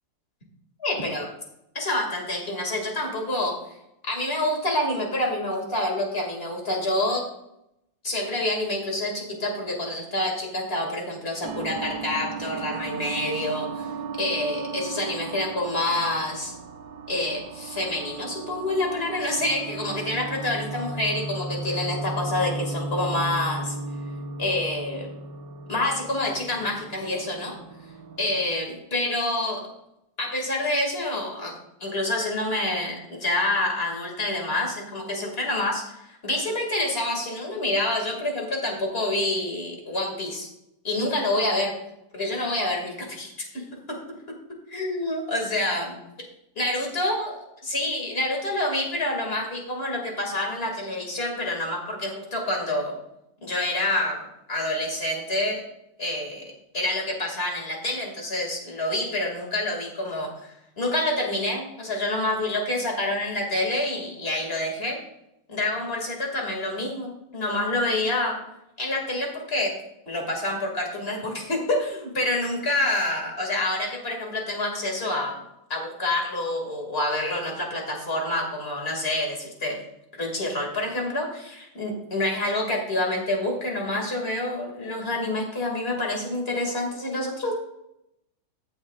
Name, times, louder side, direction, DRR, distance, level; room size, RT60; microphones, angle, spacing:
voice 1, 0.8-1.3 1.7-3.5 4.1-7.2 8.0-13.9 14.2-16.5 17.1-23.8 24.4-25.1 25.7-27.6 28.2-29.6 30.2-31.5 31.8-40.5 40.8-41.7 42.1-44.0 44.7-46.0 46.6-53.0 53.4-54.2 54.5-55.6 56.0-56.4 56.7-65.0 65.5-68.4 68.8-69.7 70.1-75.3 75.7-79.7 80.2-87.6, left 1 dB, 30° left, 0 dB, 2.3 m, -27 dB
sound 1, 11.4-28.5, right 3 dB, 55° right, 1.2 m, -35 dB
14.5 x 7.4 x 2.4 m, 0.82 s
omnidirectional pair, 2.4 m